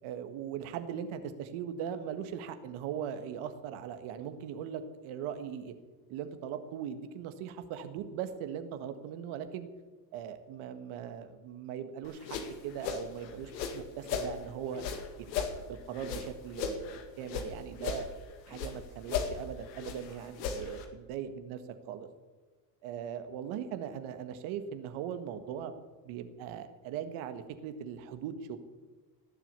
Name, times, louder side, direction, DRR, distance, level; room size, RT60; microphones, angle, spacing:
voice 1, 0.0-5.7 6.1-9.7 10.1-12.4 12.6-14.8 15.7-18.1 18.5-21.6 21.9-22.1 22.8-25.7 26.0-28.6, right 8 dB, 70° right, 9 dB, 1.8 m, -39 dB
sound 1, 12.0-14.3 14.7-17.5 17.8-18.8 19.0-20.9, left 6 dB, 90° left, 2.1 m, -36 dB
18.0 x 7.5 x 8.3 m, 1.3 s
supercardioid pair, 75°, 50 cm